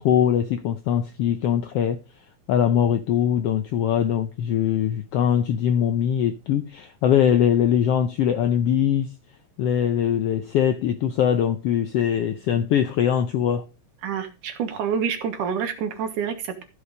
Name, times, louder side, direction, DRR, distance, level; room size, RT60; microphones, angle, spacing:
voice 1, 0.0-2.0 2.5-9.1 9.6-13.6, left 9 dB, 80° left, 1.3 m, -22 dB
voice 2, 14.0-16.6, right 7 dB, 90° right, 3.0 m, -27 dB
15.0 x 5.1 x 5.2 m
omnidirectional pair, 3.5 m